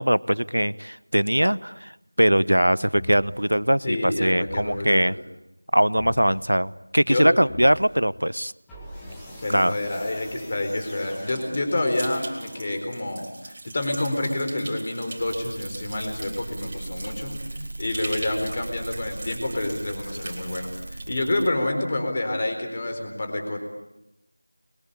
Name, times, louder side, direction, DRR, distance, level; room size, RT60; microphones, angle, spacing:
voice 1, 0.0-1.9 2.2-5.2 5.7-8.5 9.5-9.8, equal, 85° right, 19 dB, 1.0 m, -21 dB
sound 1, 2.9-3.5 4.5-5.0 6.0-6.5 7.5-8.0 8.7-13.1, left 1 dB, 5° left, 1.9 m, -42 dB
voice 2, 3.8-5.1 7.1-7.3 9.4-17.4 17.8-23.6, left 1 dB, 25° left, 5 dB, 4.2 m, -28 dB
sound 2, 11.2-21.1, right 2 dB, 20° right, 3.7 m, -41 dB
sound 3, 15.2-21.5, right 1 dB, 40° right, 3.0 m, -38 dB
29.5 x 23.0 x 8.6 m, 0.88 s
figure-of-eight pair, 175°, 0 cm